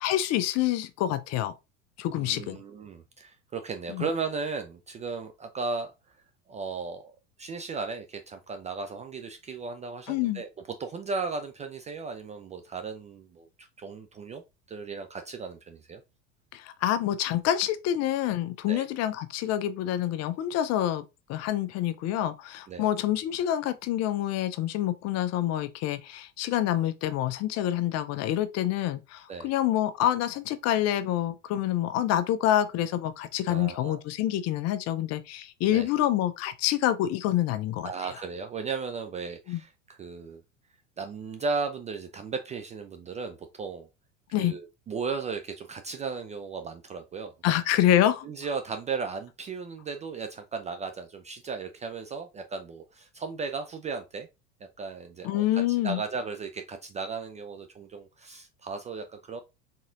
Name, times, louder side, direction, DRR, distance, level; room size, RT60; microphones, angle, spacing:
voice 1, 0.0-1.5 2.0-2.6 3.9-4.1 10.1-10.4 16.5-21.0 21.3-37.9 39.5-39.6 44.3-44.5 47.4-48.3 55.2-56.0, left 12 dB, 40° left, 0.6 m, -27 dB
voice 2, 2.2-5.9 6.5-7.1 7.4-10.5 10.8-14.4 14.7-16.0 18.7-18.9 22.7-22.9 29.3-29.5 33.5-34.0 35.7-35.9 37.8-40.4 41.0-43.9 44.4-47.6 48.2-54.3 54.8-59.4, right 4 dB, 20° right, 0.3 m, -36 dB
4.0 x 3.7 x 2.5 m
hypercardioid pair, 90°, 39 cm